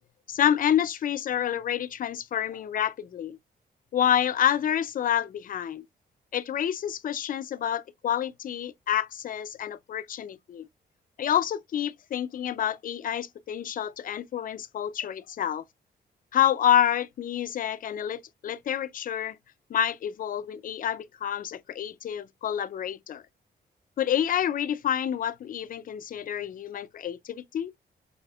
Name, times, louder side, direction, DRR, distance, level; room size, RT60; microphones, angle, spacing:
voice 1, 0.3-3.4 3.9-5.8 6.3-10.7 11.2-15.6 16.3-19.4 19.7-23.2 24.0-27.7, left 10 dB, 50° left, 0.4 m, -28 dB
4.2 x 2.8 x 2.3 m
cardioid pair, 125°, 18 cm